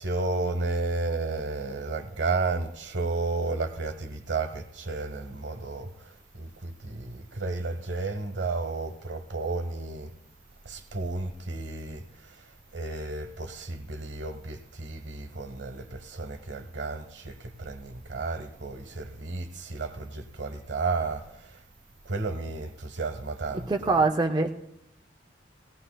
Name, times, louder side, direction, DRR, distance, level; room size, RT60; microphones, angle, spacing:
voice 1, 0.0-5.9 6.4-10.1 10.6-12.0 12.7-21.2 22.1-24.0, right 3 dB, 75° right, 1.0 m, -32 dB
voice 2, 23.7-24.5, right 3 dB, 25° right, 0.5 m, -23 dB
18.0 x 16.5 x 2.2 m
head